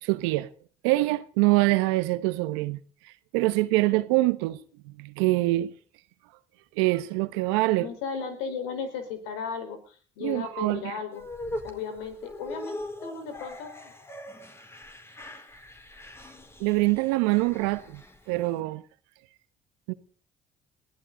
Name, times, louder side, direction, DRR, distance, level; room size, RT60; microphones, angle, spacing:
voice 1, 0.0-0.5 0.8-2.8 3.0-5.7 6.7-7.9 10.2-10.9 16.6-18.8 19.9-20.0, right 20 dB, 90° right, 1.1 m, -25 dB
voice 2, 7.8-11.2 11.6-13.9, left 6 dB, 90° left, 4.7 m, -35 dB
sound 1, 11.1-18.5, left 1 dB, 20° left, 4.2 m, -41 dB
22.5 x 16.0 x 4.0 m
supercardioid pair, 65°, 13 cm